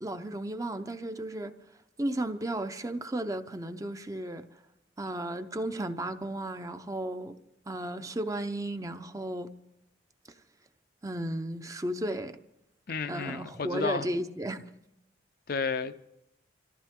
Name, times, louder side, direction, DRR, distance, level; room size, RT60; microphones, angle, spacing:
voice 1, 0.0-1.6 2.0-4.4 5.0-7.4 7.7-9.5 11.0-12.4 13.1-14.6, right 1 dB, 20° right, 0.7 m, -34 dB
voice 2, 12.9-14.0 15.5-16.0, left 4 dB, 50° left, 0.5 m, -32 dB
25.5 x 14.5 x 3.7 m
head